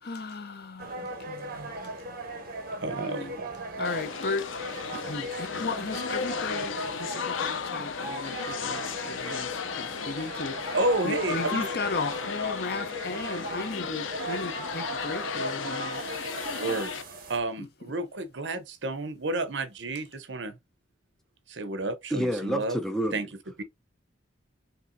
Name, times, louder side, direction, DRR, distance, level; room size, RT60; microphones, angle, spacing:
voice 1, 0.0-1.6 3.0-3.4 3.8-4.5 4.9-10.8 11.0-16.3, left 3 dB, 55° left, 0.8 m, -36 dB
sound 1, 0.8-17.4, right 2 dB, 50° right, 1.6 m, -38 dB
voice 2, 2.8-3.5 10.7-11.7 14.3-14.5 16.6-16.9 17.3-20.6 21.5-22.8 23.1-23.3 23.6-23.7, right 2 dB, 65° right, 0.8 m, -31 dB
sound 2, 3.8-17.0, left 6 dB, 85° left, 0.6 m, -34 dB
voice 3, 22.1-23.3, equal, ahead, 0.6 m, -29 dB
5.8 x 2.9 x 2.6 m
head